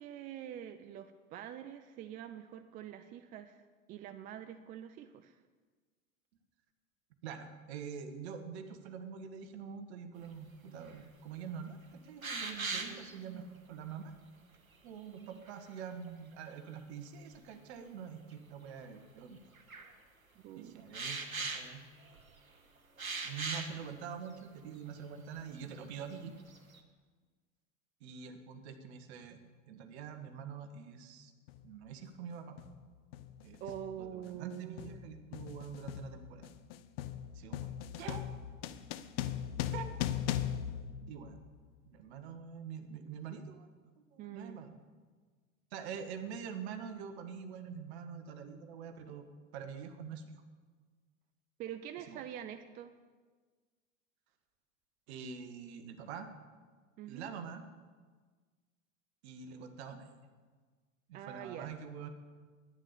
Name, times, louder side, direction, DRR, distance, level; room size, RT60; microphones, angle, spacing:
voice 1, 0.0-3.6 3.9-5.4 12.7-13.5 15.2-15.4 20.4-20.8 33.6-35.0 41.0-41.1 42.9-43.1 44.2-44.6 51.6-52.9 57.0-57.3 61.1-61.7, right 10 dB, 20° right, 10 dB, 0.4 m, -46 dB
voice 2, 7.2-14.1 14.8-19.4 20.6-21.8 23.2-26.3 28.0-29.4 29.7-31.3 31.6-32.6 33.4-33.6 34.0-36.5 37.3-37.7 38.0-38.3 39.7-39.9 41.1-41.5 41.8-43.7 44.1-44.8 45.7-49.3 49.5-50.2 52.1-52.2 55.1-56.3 57.1-57.6 59.2-60.1 61.1-62.1, right 7 dB, 50° right, 8 dB, 1.5 m, -45 dB
sound 1, 10.9-11.0 11.5-11.6 12.2-13.2 15.3-16.1 17.3-17.4 18.3-18.4 19.5-19.9 20.9-22.4 23.0-23.8 24.4-24.5 24.9-25.0 25.4-25.8 26.2-26.8, right 4 dB, 85° right, 1.2 m, -39 dB
sound 2, 31.5-31.7 32.6-32.8 33.1-41.7, left 11 dB, 45° left, 0.7 m, -39 dB
11.0 x 9.4 x 6.9 m, 1.5 s
figure-of-eight pair, 85°, 40 cm